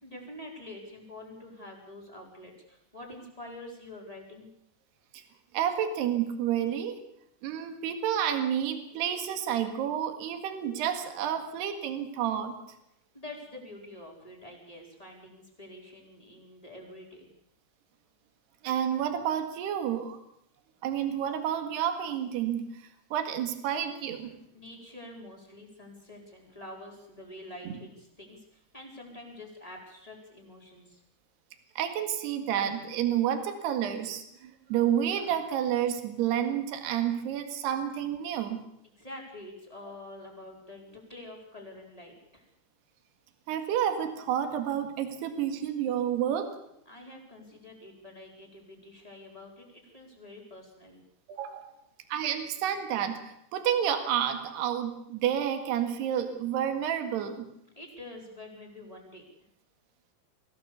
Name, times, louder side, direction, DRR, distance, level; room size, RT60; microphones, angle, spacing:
voice 1, 0.0-4.5 13.1-17.3 24.5-31.0 39.0-42.5 46.8-51.0 57.7-59.2, left 1 dB, 10° left, -1 dB, 4.5 m, -47 dB
voice 2, 5.5-7.0 7.4-12.5 18.6-20.2 20.8-22.7 23.1-24.3 27.7-27.8 31.8-38.6 43.5-46.5 51.3-51.7 52.1-57.5, right 9 dB, 75° right, 7 dB, 3.9 m, -30 dB
24.5 x 17.0 x 7.1 m, 0.77 s
omnidirectional pair, 4.9 m